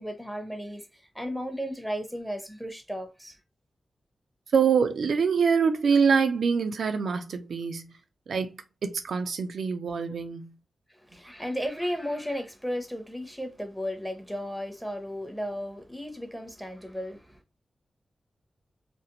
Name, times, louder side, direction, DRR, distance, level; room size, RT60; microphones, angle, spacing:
voice 1, 0.0-3.4 10.9-17.4, equal, ahead, 0.7 m, -34 dB
voice 2, 4.5-7.9 8.3-8.5 8.8-10.5, right 6 dB, 80° right, 0.3 m, -25 dB
2.5 x 2.0 x 2.8 m
cardioid pair, 60°, 0 cm